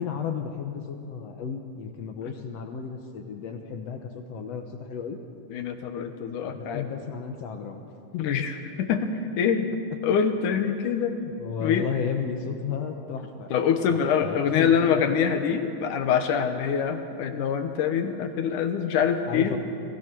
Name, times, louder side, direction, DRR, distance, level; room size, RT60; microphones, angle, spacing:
voice 1, 0.0-5.2 6.4-8.4 11.1-13.5 13.9-15.0 19.3-19.6, left 7 dB, 65° left, 5 dB, 2.0 m, -33 dB
voice 2, 5.5-6.8 8.2-9.1 9.4-9.7 10.0-11.1 11.6-11.9 13.5-19.6, left 7 dB, 80° left, 7 dB, 2.6 m, -25 dB
26.5 x 16.5 x 6.1 m, 2.5 s
omnidirectional pair, 3.6 m